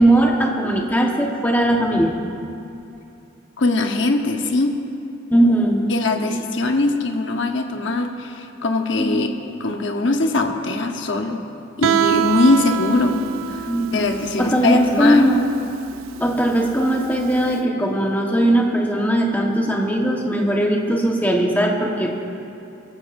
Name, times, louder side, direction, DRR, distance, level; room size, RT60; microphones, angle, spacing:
voice 1, 0.0-2.1 5.3-5.9 9.0-9.2 13.7-15.4 16.2-22.1, right 1 dB, 10° left, -1 dB, 1.3 m, -19 dB
voice 2, 3.6-4.7 5.9-9.3 9.6-11.4 11.8-13.2 13.5-15.3, left 2 dB, 65° left, 4 dB, 1.0 m, -21 dB
Guitar, 11.8-17.5, right 9 dB, 80° right, 0.3 m, -25 dB
22.5 x 15.0 x 2.6 m, 2.7 s
head